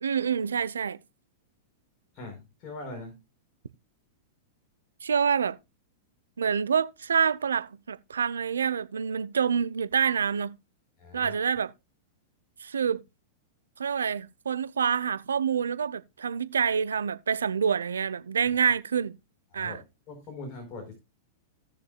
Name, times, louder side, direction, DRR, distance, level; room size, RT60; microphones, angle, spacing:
voice 1, 0.0-1.0 5.0-5.6 6.4-10.6 11.1-11.7 12.6-13.0 13.8-19.2 19.5-19.8, right 7 dB, 85° right, 0.7 m, -27 dB
voice 2, 2.1-3.2 11.0-11.4 19.5-19.8 20.1-20.9, left 2 dB, 45° left, 4.7 m, -41 dB
17.5 x 6.8 x 2.3 m
hypercardioid pair, 105°, 0 cm